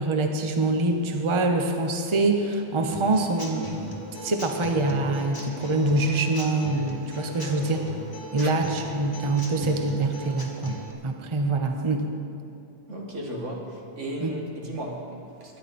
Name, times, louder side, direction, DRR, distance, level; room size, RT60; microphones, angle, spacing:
voice 1, 0.0-3.8 4.2-7.9 8.3-10.8 11.0-12.1 14.2-14.4, right 2 dB, 30° right, 4 dB, 0.9 m, -25 dB
Human voice / Acoustic guitar / Drum, 2.9-10.9, equal, 20° left, 1.6 m, -39 dB
voice 2, 12.9-15.6, right 1 dB, 85° right, -1 dB, 2.3 m, -35 dB
22.0 x 10.0 x 4.3 m, 2.6 s
omnidirectional pair, 1.2 m